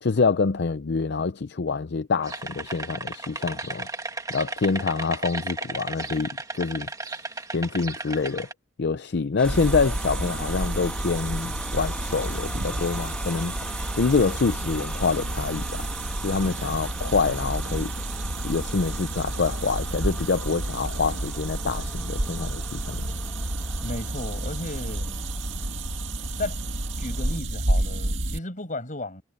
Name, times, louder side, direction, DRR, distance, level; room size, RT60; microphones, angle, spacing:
voice 1, 0.0-3.9 4.3-7.2 7.5-8.5 8.8-13.5 13.9-15.8 16.2-17.9 18.4-23.1, left 4 dB, 65° left, 0.6 m, -26 dB
sound 1, 2.2-8.5, right 3 dB, 20° right, 1.9 m, -34 dB
sound 2, 9.4-27.4, left 1 dB, 5° left, 1.4 m, -41 dB
sound 3, 9.4-28.4, right 2 dB, 80° right, 2.1 m, -30 dB
voice 2, 23.8-25.2 26.4-26.6 27.0-29.2, left 2 dB, 45° left, 7.7 m, -34 dB
head